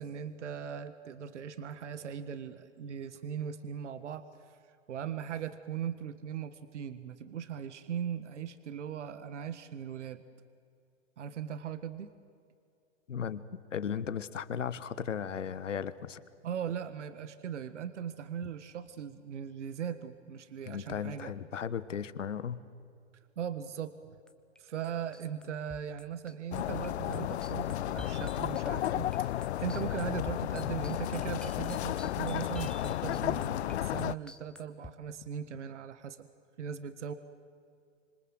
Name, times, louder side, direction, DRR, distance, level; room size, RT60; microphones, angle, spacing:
voice 1, 0.0-4.6 4.9-10.2 11.2-12.1 16.4-21.3 23.4-24.1 24.6-36.3 36.6-37.1, right 8 dB, 70° right, 12 dB, 1.6 m, -39 dB
voice 2, 13.1-16.2 20.7-22.6, left 8 dB, 80° left, 14 dB, 1.5 m, -36 dB
sound 1, 24.3-24.6 24.8-34.9, left 2 dB, ahead, 1.1 m, -50 dB
sound 2, 26.5-34.1, left 13 dB, 60° left, 0.6 m, -33 dB
26.5 x 26.5 x 7.9 m, 2.4 s
hypercardioid pair, 120°, 37 cm